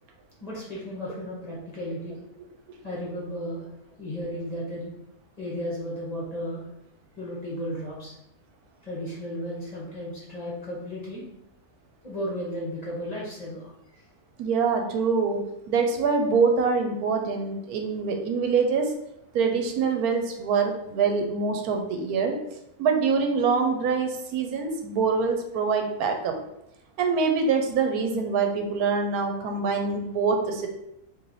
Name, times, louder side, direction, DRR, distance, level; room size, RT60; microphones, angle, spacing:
voice 1, 0.4-2.2 2.8-4.9 5.4-6.7 7.2-8.1 8.8-11.2 12.0-14.0, equal, 30° left, -6 dB, 1.1 m, -34 dB
voice 2, 14.4-15.4 15.7-18.9 19.3-22.4 22.8-26.3 27.0-30.7, right 5 dB, 85° right, 4 dB, 1.1 m, -24 dB
3.1 x 2.8 x 3.9 m, 0.82 s
omnidirectional pair, 1.6 m